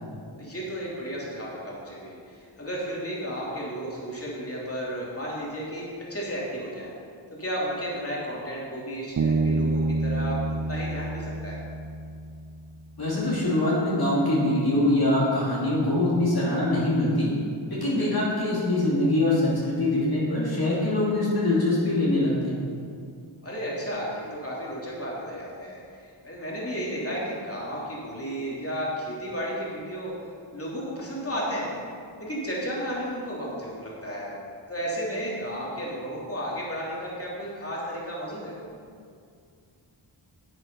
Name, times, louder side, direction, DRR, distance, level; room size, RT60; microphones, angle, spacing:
voice 1, 0.4-6.9 7.3-10.4 10.7-11.6 17.9-18.1 23.4-25.8 26.2-30.1 30.5-31.7 32.2-34.4 34.7-38.5, equal, 30° left, -5 dB, 2.9 m, -33 dB
Bass guitar, 9.2-12.7, right 3 dB, 45° right, 0.4 m, -27 dB
voice 2, 13.0-17.3 17.7-22.6, left 1 dB, 50° left, -7 dB, 2.7 m, -23 dB
10.0 x 8.0 x 5.5 m, 2.3 s
wide cardioid pair, 50°, 47 cm